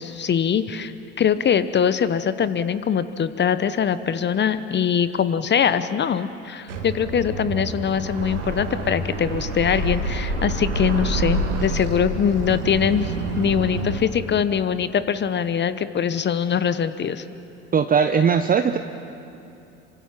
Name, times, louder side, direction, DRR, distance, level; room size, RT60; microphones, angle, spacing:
voice 1, 0.0-17.2, left 8 dB, 30° left, 13 dB, 1.0 m, -22 dB
sound 1, 6.7-14.0, right 2 dB, 80° right, 2.7 m, -27 dB
voice 2, 17.7-18.8, right 6 dB, 25° right, 8 dB, 0.9 m, -19 dB
27.5 x 25.0 x 6.0 m, 2.7 s
figure-of-eight pair, 65°, 35 cm